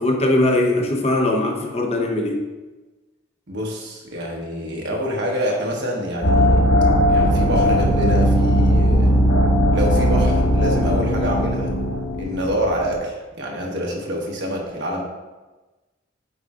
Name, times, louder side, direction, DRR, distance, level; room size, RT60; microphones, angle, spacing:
voice 1, 0.0-2.5, left 1 dB, 30° left, 1 dB, 0.6 m, -20 dB
voice 2, 3.5-6.6 7.1-9.1 9.7-11.7 12.2-15.0, equal, 60° right, -1 dB, 1.1 m, -26 dB
sound 1, 6.2-12.9, equal, 60° left, 1.6 m, -18 dB
8.3 x 4.8 x 2.4 m, 1.2 s
head